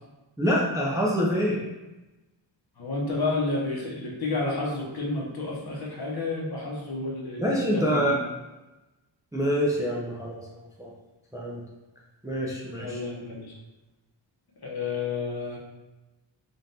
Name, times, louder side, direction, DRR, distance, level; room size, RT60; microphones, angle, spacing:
voice 1, 0.4-1.6 7.4-8.2 9.3-10.4 10.8-10.9 11.3-11.6 12.2-13.0, equal, 10° right, -4 dB, 0.4 m, -25 dB
voice 2, 2.8-8.2 12.8-13.6 14.6-15.6, left 3 dB, 50° left, -2 dB, 1.0 m, -30 dB
5.2 x 2.5 x 2.7 m, 1.1 s
wide cardioid pair, 175°, 46 cm